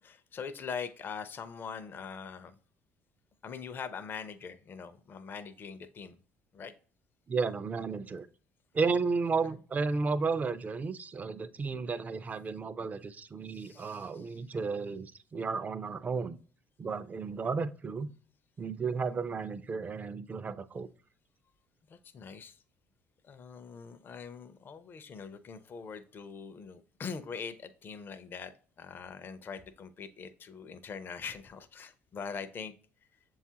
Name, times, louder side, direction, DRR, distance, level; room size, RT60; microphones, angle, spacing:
voice 1, 0.0-2.6 3.4-6.2 6.5-6.7 13.5-14.4 21.9-22.6 23.2-28.5 28.8-32.7, left 6 dB, 40° left, 10 dB, 0.4 m, -42 dB
voice 2, 7.3-8.3 8.7-16.4 16.8-18.1 18.6-20.9, right 4 dB, 30° right, 14 dB, 0.4 m, -33 dB
6.9 x 2.4 x 2.7 m, 0.42 s
supercardioid pair, 70°, 5 cm